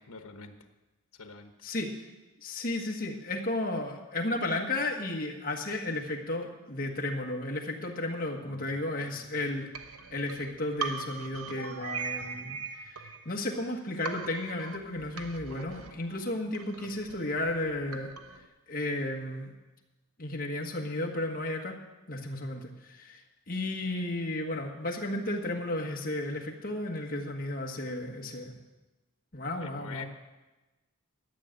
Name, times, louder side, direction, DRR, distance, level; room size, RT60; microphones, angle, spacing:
voice 1, 0.1-0.5 1.1-1.5 8.4-9.5 29.6-30.0, left 5 dB, 85° left, 6 dB, 1.1 m, -46 dB
voice 2, 2.4-9.7 10.1-12.6 12.9-18.1 18.7-19.5 20.2-21.7 22.1-23.2 23.5-28.6 29.3-30.0, left 2 dB, 40° left, 0 dB, 1.5 m, -33 dB
sound 1, 9.7-13.7 14.1-18.5, right 5 dB, 85° right, 1.0 m, -41 dB
12.0 x 6.5 x 8.9 m, 1.1 s
head